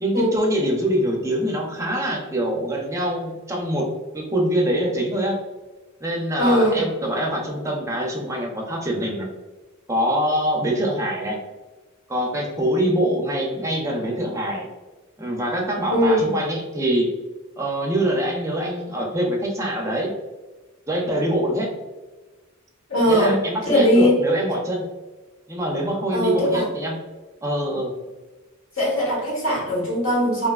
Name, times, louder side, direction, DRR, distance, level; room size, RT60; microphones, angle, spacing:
voice 1, 0.0-3.9 4.1-5.4 6.0-9.3 9.9-11.4 12.1-14.7 15.2-17.1 17.6-20.1 20.9-21.7 23.1-24.8 25.5-27.0 27.4-27.9, equal, 15° right, -1 dB, 0.5 m, -24 dB
voice 2, 6.4-6.8 15.9-16.3 22.9-23.4 23.6-24.2 26.1-26.6 28.8-30.5, equal, 65° left, -4 dB, 1.2 m, -19 dB
3.2 x 2.7 x 2.3 m, 1.2 s
head